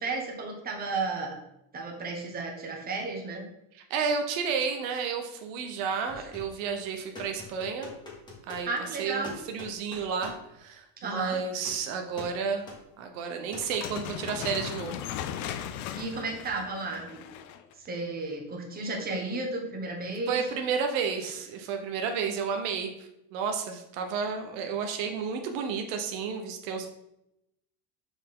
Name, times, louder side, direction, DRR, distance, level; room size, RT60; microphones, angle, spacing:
voice 1, 0.0-1.4 1.7-3.4 6.2-6.3 8.7-9.3 11.0-11.4 15.9-17.2 17.8-20.4, right 3 dB, 25° right, 0 dB, 1.3 m, -33 dB
voice 2, 3.7-7.9 8.5-8.7 9.0-12.6 13.0-15.1 20.3-26.9, right 6 dB, 75° right, 4 dB, 0.9 m, -31 dB
sound 1, 6.1-6.6 7.1-8.7 9.2-10.5 11.6-11.8 12.2-12.4 12.7-12.8 13.5-13.7, left 3 dB, 10° left, 1.5 m, -44 dB
sound 2, 13.5-17.7, left 10 dB, 50° left, 0.5 m, -37 dB
5.9 x 4.5 x 3.8 m, 0.84 s
cardioid pair, 140°, 39 cm